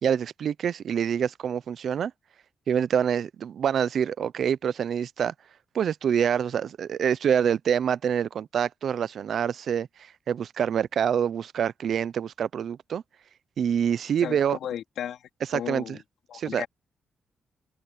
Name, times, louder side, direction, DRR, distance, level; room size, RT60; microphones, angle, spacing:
voice 1, 0.0-2.1 2.7-5.3 5.7-13.0 13.6-14.6 15.5-16.0 16.3-16.6, right 8 dB, 65° right, 0.7 m, -26 dB
voice 2, 14.2-15.2 15.5-16.0 16.3-16.7, left 10 dB, 80° left, 3.2 m, -34 dB
cardioid pair, 90°, 0 cm